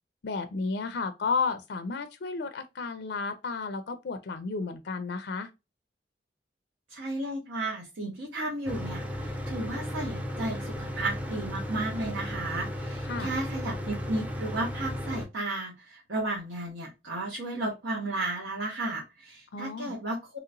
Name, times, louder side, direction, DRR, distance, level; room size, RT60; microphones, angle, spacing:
voice 1, 0.2-5.5 13.1-13.3 19.5-19.9, left 4 dB, 65° left, 0.4 m, -32 dB
voice 2, 6.9-20.4, right 2 dB, 85° right, 1.1 m, -33 dB
Mechanical fan, 8.7-15.3, equal, 10° right, 0.5 m, -35 dB
3.0 x 2.9 x 2.5 m
head